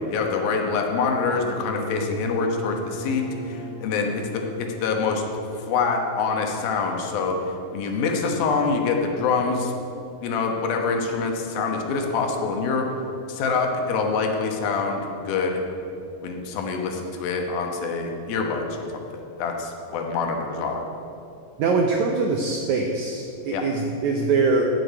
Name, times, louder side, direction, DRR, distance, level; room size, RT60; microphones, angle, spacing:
voice 1, 0.1-5.2 5.5-7.4 7.7-9.7 10.2-12.8 13.3-15.6 16.2-20.8 23.5-23.6, left 4 dB, 75° left, 3 dB, 2.9 m, -25 dB
sound 1, 1.2-6.7, left 1 dB, 35° left, 1.4 m, -38 dB
voice 2, 21.6-24.6, right 4 dB, 80° right, 2 dB, 1.7 m, -23 dB
9.3 x 8.2 x 8.9 m, 2.6 s
omnidirectional pair, 4.4 m